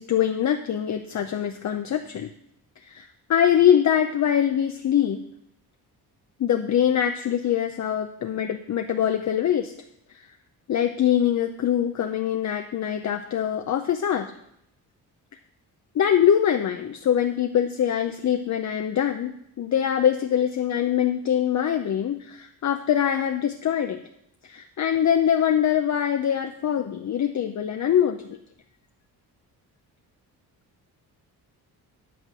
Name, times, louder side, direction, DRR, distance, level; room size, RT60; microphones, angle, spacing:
voice 1, 0.0-2.3 2.9-5.2 6.4-9.7 10.7-14.3 15.9-24.0 24.5-28.4, left 9 dB, 45° left, 5 dB, 0.7 m, -23 dB
11.0 x 3.8 x 7.4 m, 0.75 s
cardioid pair, 90°, 39 cm